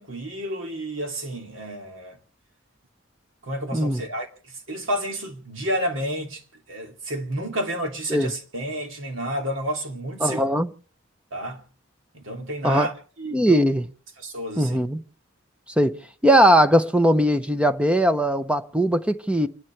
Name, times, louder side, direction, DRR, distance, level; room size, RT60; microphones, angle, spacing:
voice 1, 0.0-2.2 3.4-6.4 6.7-10.4 11.3-11.6 12.1-12.9 13.2-13.6 14.2-14.8, right 1 dB, 75° right, 2.6 m, -30 dB
voice 2, 10.2-10.7 12.6-12.9 13.3-13.8 14.6-15.0 15.8-19.5, equal, 5° right, 0.7 m, -19 dB
29.0 x 10.5 x 3.4 m
head